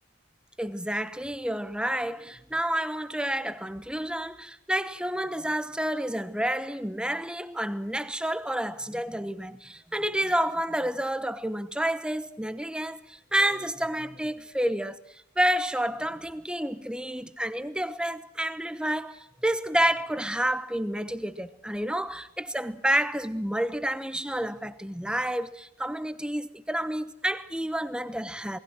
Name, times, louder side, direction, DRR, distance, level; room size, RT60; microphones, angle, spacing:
voice 1, 0.6-28.6, right 1 dB, 5° right, 0.9 m, -29 dB
28.5 x 20.5 x 6.2 m
head